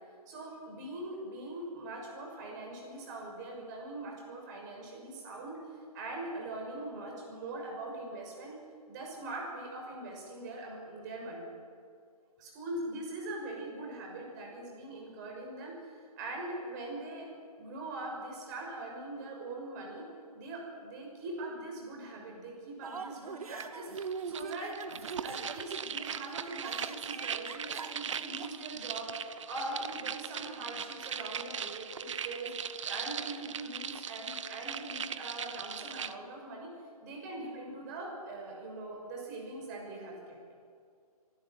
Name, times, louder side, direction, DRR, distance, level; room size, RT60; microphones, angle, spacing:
voice 1, 0.3-5.6 5.9-8.6 8.9-11.5 12.4-17.3 17.6-23.9 24.2-24.8 25.2-32.5 32.8-36.7 37.0-40.4, right 2 dB, 30° right, -1 dB, 6.5 m, -42 dB
sound 1, 22.8-28.5, right 5 dB, 70° right, 1.8 m, -42 dB
sound 2, 23.6-23.7 24.0-36.1, right 7 dB, 50° right, 1.0 m, -39 dB
25.0 x 12.0 x 9.4 m, 2.3 s
hypercardioid pair, 150°, 20 cm